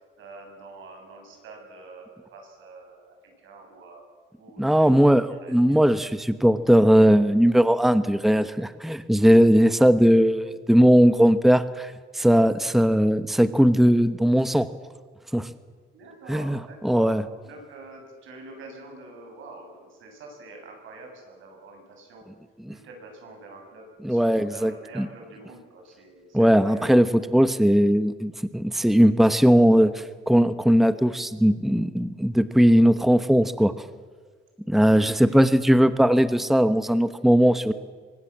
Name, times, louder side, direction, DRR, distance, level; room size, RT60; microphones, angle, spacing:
voice 1, 0.2-4.0 4.4-5.8 15.9-17.2 17.4-22.3 22.7-27.2 28.7-28.8 35.2-35.5, right 3 dB, 80° right, 2 dB, 8.0 m, -46 dB
voice 2, 4.6-14.7 15.3-15.5 16.3-17.2 22.6-22.7 24.0-25.1 26.3-33.7 34.7-37.7, equal, ahead, 12 dB, 1.1 m, -19 dB
24.5 x 20.5 x 7.4 m, 1.5 s
cardioid pair, 90°, 20 cm